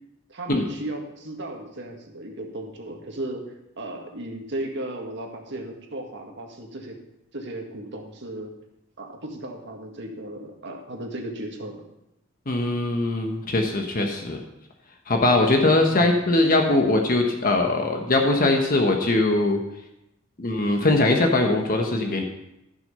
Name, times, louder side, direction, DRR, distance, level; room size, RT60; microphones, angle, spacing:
voice 1, 0.3-3.5 3.8-7.0 7.3-8.5 9.0-11.8 15.9-16.1, right 1 dB, 60° right, 2 dB, 1.9 m, -35 dB
voice 2, 12.5-14.4 15.1-19.6 20.4-22.2, left 2 dB, 45° left, 3 dB, 1.2 m, -21 dB
14.5 x 6.3 x 5.6 m, 0.88 s
head